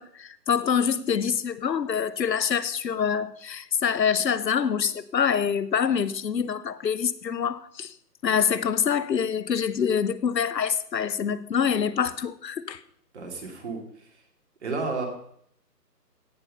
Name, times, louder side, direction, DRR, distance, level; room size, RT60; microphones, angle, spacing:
voice 1, 0.0-7.9 8.2-12.8, left 7 dB, 90° left, 0.9 m, -25 dB
voice 2, 13.1-13.8 14.6-15.0, right 4 dB, 40° right, 2.8 m, -31 dB
16.5 x 5.9 x 5.4 m
hypercardioid pair, 160°, 49 cm